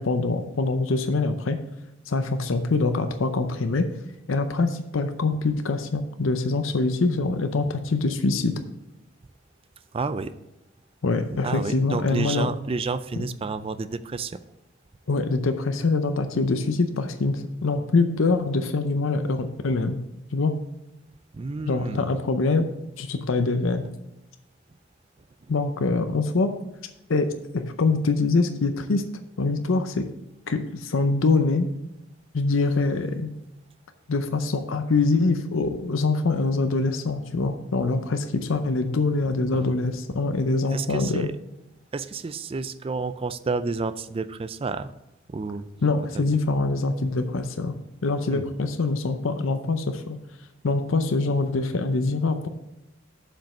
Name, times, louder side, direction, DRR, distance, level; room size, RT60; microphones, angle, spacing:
voice 1, 0.0-1.6 2.1-3.9 4.3-8.5 11.0-12.5 15.1-20.0 20.3-20.6 21.6-22.7 23.0-23.9 25.5-26.5 27.1-27.3 27.5-29.0 29.4-30.1 30.5-31.7 32.3-33.3 34.1-41.3 45.8-47.7 48.0-50.2 50.6-52.5, left 3 dB, 80° left, 8 dB, 0.6 m, -24 dB
voice 2, 9.9-10.3 11.4-14.4 21.3-22.1 39.5-39.7 40.7-41.3 41.9-44.9 45.3-45.7 46.1-46.3 48.3-48.4, right 4 dB, 30° right, 13 dB, 0.4 m, -30 dB
7.3 x 5.2 x 6.5 m, 0.90 s
head